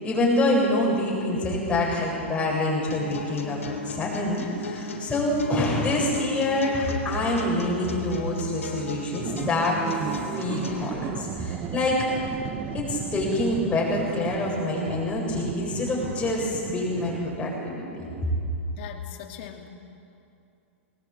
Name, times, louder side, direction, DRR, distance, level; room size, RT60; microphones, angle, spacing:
voice 1, 0.0-9.8 10.3-12.0 12.7-18.1, left 1 dB, 15° left, -3 dB, 7.7 m, -26 dB
sound 1, 2.9-10.9, left 2 dB, 85° left, 3.5 m, -37 dB
sound 2, 9.2-17.7, right 8 dB, 30° right, 1.4 m, -35 dB
voice 2, 18.7-19.7, left 10 dB, 55° left, 4 dB, 2.7 m, -41 dB
20.5 x 19.5 x 9.0 m, 2.6 s
hypercardioid pair, 120°, 7 cm